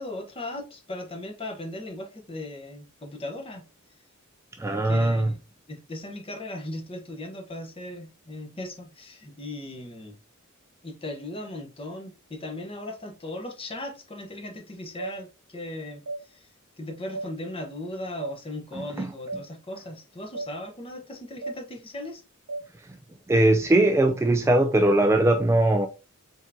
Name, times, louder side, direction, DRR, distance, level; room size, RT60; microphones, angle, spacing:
voice 1, 0.0-3.6 4.7-5.4 5.7-10.2 10.8-16.5 16.8-22.2, left 1 dB, 25° left, 1.0 m, -37 dB
voice 2, 4.6-5.3 19.0-19.1 23.3-25.9, right 1 dB, 15° right, 0.3 m, -20 dB
sound 1, 15.0-15.1 16.1-16.2 17.1-17.3 18.2-18.4 19.3-19.4 20.3-20.5 21.4-21.6 22.5-22.6, right 2 dB, 70° right, 0.8 m, -33 dB
4.5 x 3.5 x 2.7 m
head